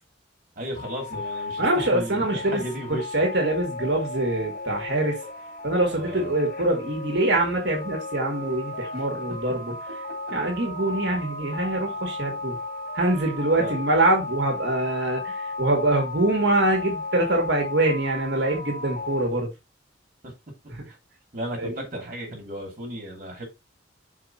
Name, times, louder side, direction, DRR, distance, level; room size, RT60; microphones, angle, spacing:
voice 1, 0.5-3.1 5.9-6.4 13.6-13.7 20.2-20.3 21.3-23.4, right 1 dB, 45° right, 3.3 m, -34 dB
sound 1, 0.8-19.2, left 2 dB, 50° left, 2.4 m, -35 dB
voice 2, 1.6-2.6 2.9-5.2 5.6-9.7 10.3-12.6 12.9-19.5 20.7-20.9 21.6-21.8, right 2 dB, 65° right, 2.0 m, -24 dB
5.9 x 4.9 x 4.2 m
head